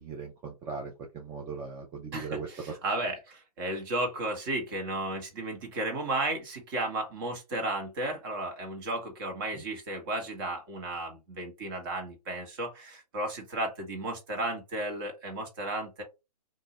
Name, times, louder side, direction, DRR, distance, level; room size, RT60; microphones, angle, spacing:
voice 1, 0.0-2.8, right 5 dB, 15° right, 1 dB, 0.5 m, -38 dB
voice 2, 2.1-16.0, right 2 dB, 35° right, 3 dB, 1.3 m, -34 dB
2.7 x 2.6 x 4.0 m, 0.25 s
hypercardioid pair, 135°, 20 cm